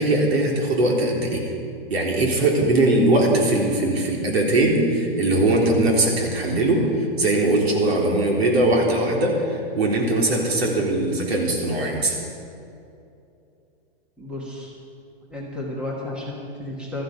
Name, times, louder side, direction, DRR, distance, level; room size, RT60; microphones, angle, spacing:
voice 1, 0.0-1.5 1.9-12.2, right 2 dB, 85° right, -1 dB, 4.0 m, -20 dB
voice 2, 14.2-14.7 15.3-17.0, left 1 dB, 5° right, -3 dB, 1.4 m, -32 dB
18.0 x 13.5 x 5.3 m, 2.6 s
hypercardioid pair, 175°, 30 cm